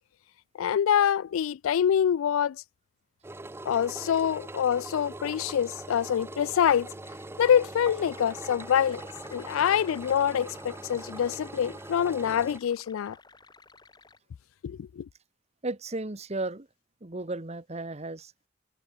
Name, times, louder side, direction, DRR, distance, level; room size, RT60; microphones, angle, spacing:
voice 1, 0.6-2.6 3.7-6.9 7.4-9.0 9.3-13.2 14.6-15.1, left 8 dB, 90° left, 0.3 m, -25 dB
Engine, 3.2-12.6, right 2 dB, 10° right, 0.5 m, -42 dB
sound 1, 8.0-14.2, left 3 dB, 20° left, 2.2 m, -52 dB
voice 2, 15.6-16.7 17.0-18.5, right 2 dB, 35° right, 1.2 m, -34 dB
head